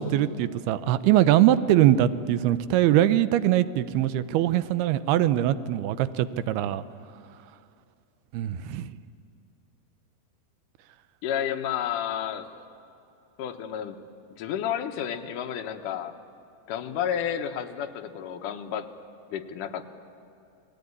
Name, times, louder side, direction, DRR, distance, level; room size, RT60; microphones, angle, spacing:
voice 1, 0.0-6.8 8.3-8.9, right 12 dB, 80° right, 14 dB, 2.6 m, -22 dB
voice 2, 11.2-12.5 13.4-14.0 14.4-16.2 16.7-18.9 19.3-19.8, left 9 dB, 65° left, 5 dB, 2.3 m, -31 dB
29.0 x 19.5 x 9.6 m, 2.5 s
omnidirectional pair, 4.8 m